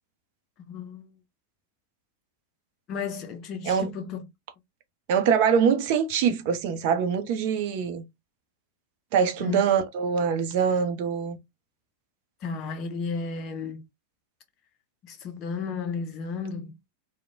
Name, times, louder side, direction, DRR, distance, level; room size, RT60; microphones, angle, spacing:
voice 1, 0.7-1.1 2.9-4.2 9.4-9.6 12.4-13.8 15.0-16.7, left 5 dB, 35° left, 0.4 m, -33 dB
voice 2, 5.1-8.0 9.1-11.4, right 7 dB, 45° right, 0.6 m, -24 dB
2.9 x 2.1 x 2.4 m
figure-of-eight pair, 90°, 0 cm